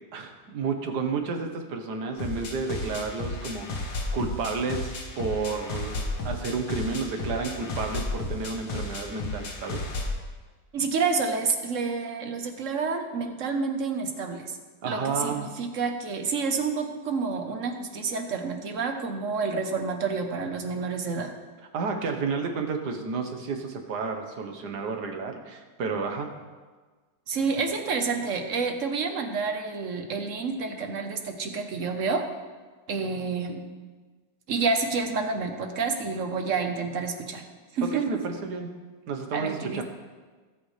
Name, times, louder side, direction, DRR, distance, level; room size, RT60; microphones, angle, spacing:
voice 1, 0.1-6.0 6.2-9.8 14.8-15.5 21.7-26.3 37.8-38.7 39.1-39.8, right 4 dB, 75° right, 4 dB, 1.7 m, -31 dB
sound 1, 2.2-10.2, left 2 dB, 75° left, 1.8 m, -33 dB
voice 2, 10.7-14.6 14.8-21.3 27.3-32.2 32.9-33.6 34.5-37.4 37.7-38.0 39.3-39.8, right 4 dB, 55° right, 5 dB, 1.2 m, -29 dB
17.5 x 7.9 x 3.3 m, 1.4 s
omnidirectional pair, 1.8 m